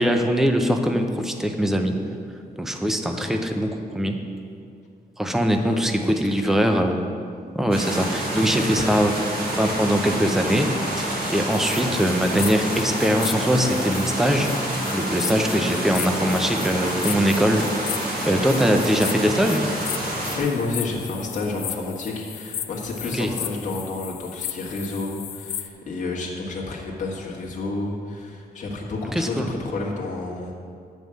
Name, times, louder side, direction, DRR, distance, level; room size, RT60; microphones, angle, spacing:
voice 1, 0.0-2.0 2.6-4.2 5.2-7.0 7.5-9.2 9.5-14.5 14.9-17.9 18.2-19.7 23.1-23.3 29.1-29.5, equal, ahead, 4 dB, 0.5 m, -22 dB
voice 2, 5.5-6.5 8.8-9.0 20.3-30.5, left 3 dB, 50° left, -3 dB, 1.5 m, -30 dB
sound 1, 7.7-20.4, right 1 dB, 65° right, 2.8 m, -28 dB
sound 2, 11.5-25.7, left 10 dB, 90° left, 0.5 m, -36 dB
9.5 x 5.3 x 7.5 m, 2.3 s
wide cardioid pair, 180°, 16 cm